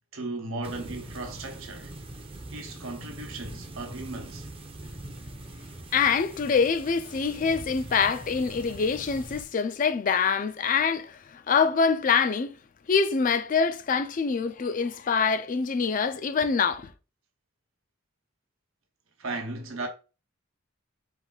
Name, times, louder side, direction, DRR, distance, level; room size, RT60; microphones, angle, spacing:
voice 1, 0.1-2.0 2.5-4.5 19.2-19.9, right 2 dB, 90° right, 1.0 m, -36 dB
sound 1, 0.6-9.4, right 1 dB, 25° right, 0.5 m, -43 dB
voice 2, 5.9-12.5 12.9-16.9, left 5 dB, 40° left, 0.4 m, -25 dB
4.5 x 2.6 x 3.8 m
head